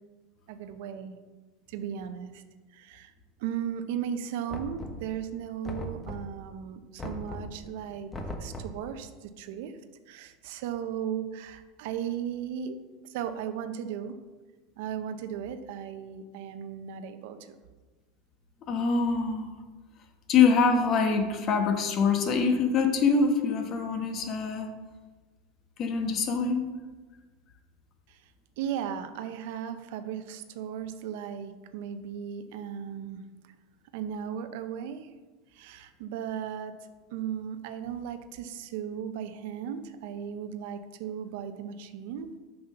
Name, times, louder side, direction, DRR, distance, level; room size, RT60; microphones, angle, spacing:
voice 1, 0.5-1.2 1.7-2.4 2.7-3.1 3.4-8.1 8.4-9.8 10.1-12.8 13.0-14.2 14.8-17.6 28.1-28.2 28.6-33.5 33.9-35.1 35.5-36.7 37.1-42.3, right 8 dB, 70° right, 9 dB, 0.7 m, -36 dB
Knock, 4.5-5.2 5.6-6.4 7.0-7.6 8.1-8.8, left 1 dB, 15° left, 1.0 m, -38 dB
voice 2, 18.7-19.5 20.3-24.7 25.8-26.7, left 5 dB, 40° left, 6 dB, 1.2 m, -24 dB
6.6 x 5.7 x 5.7 m, 1.3 s
supercardioid pair, 125°, 0 cm